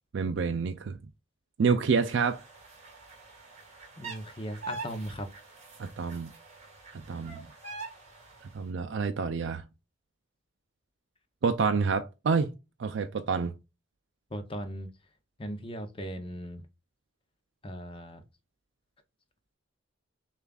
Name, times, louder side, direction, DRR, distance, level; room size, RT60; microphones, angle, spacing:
voice 1, 0.1-1.0 1.6-2.4 5.8-6.3 6.9-7.5 8.5-9.6 11.4-12.5 12.8-13.5, right 5 dB, 60° right, 0.4 m, -28 dB
Black Swan, 2.0-8.6, right 4 dB, 35° right, 1.7 m, -45 dB
voice 2, 4.0-5.3 14.3-14.9 15.4-16.6 17.6-18.2, equal, 25° left, 0.6 m, -38 dB
6.7 x 2.4 x 2.3 m
head